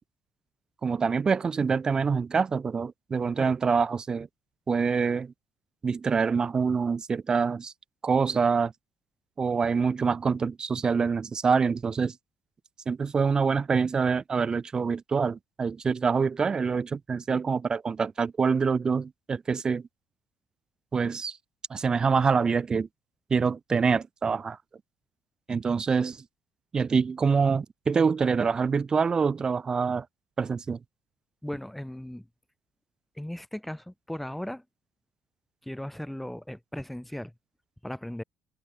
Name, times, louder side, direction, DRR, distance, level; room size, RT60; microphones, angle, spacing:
voice 1, 0.8-4.3 4.7-5.3 5.8-7.7 8.0-8.7 9.4-12.1 12.9-19.8 20.9-21.4 21.7-22.9 23.3-24.6 25.5-26.2 26.7-30.1 30.4-30.8, right 5 dB, 35° right, 0.4 m, -25 dB
voice 2, 31.4-32.3 33.2-34.6 35.6-37.3 37.8-38.2, left 1 dB, 5° left, 1.2 m, -37 dB
supercardioid pair, 65°, 2 cm